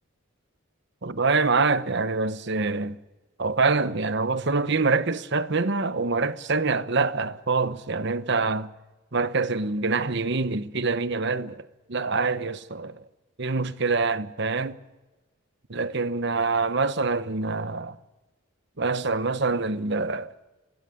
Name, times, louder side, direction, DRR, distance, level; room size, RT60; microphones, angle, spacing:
voice 1, 1.0-3.0 3.4-8.7 9.1-13.0 13.4-14.8 15.7-18.0 18.8-20.3, right 3 dB, 55° right, 1.0 m, -25 dB
20.5 x 16.5 x 9.8 m
head